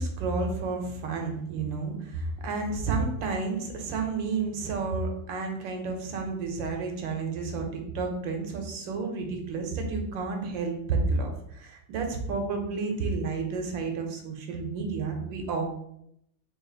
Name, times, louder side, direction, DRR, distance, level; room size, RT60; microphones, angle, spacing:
voice 1, 0.0-15.7, right 4 dB, 85° right, 3 dB, 1.4 m, -31 dB
3.6 x 2.5 x 3.8 m, 0.75 s
omnidirectional pair, 2.0 m